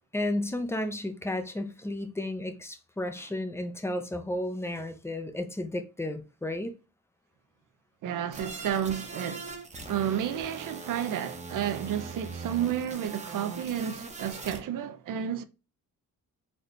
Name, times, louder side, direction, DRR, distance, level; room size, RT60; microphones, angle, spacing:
voice 1, 0.1-6.7, left 1 dB, 10° left, 0.5 m, -33 dB
voice 2, 8.0-9.6 9.9-15.4, right 9 dB, 65° right, 0.6 m, -31 dB
sound 1, 8.3-14.6, right 3 dB, 20° right, 0.8 m, -41 dB
4.2 x 2.8 x 3.1 m
wide cardioid pair, 150°, 34 cm